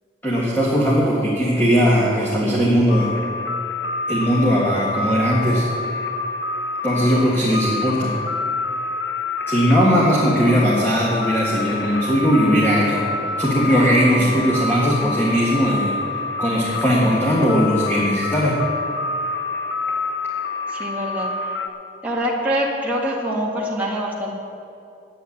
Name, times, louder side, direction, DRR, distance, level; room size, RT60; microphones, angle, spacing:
voice 1, 0.2-3.1 4.1-5.7 6.8-8.1 9.5-13.1 13.4-15.9 16.4-18.6, equal, 10° left, -7 dB, 1.7 m, -18 dB
sound 1, 2.9-21.7, left 3 dB, 65° left, 0.8 m, -27 dB
voice 2, 20.7-21.4 22.0-24.4, equal, 5° right, -4 dB, 1.9 m, -24 dB
10.5 x 9.1 x 8.5 m, 2.6 s
head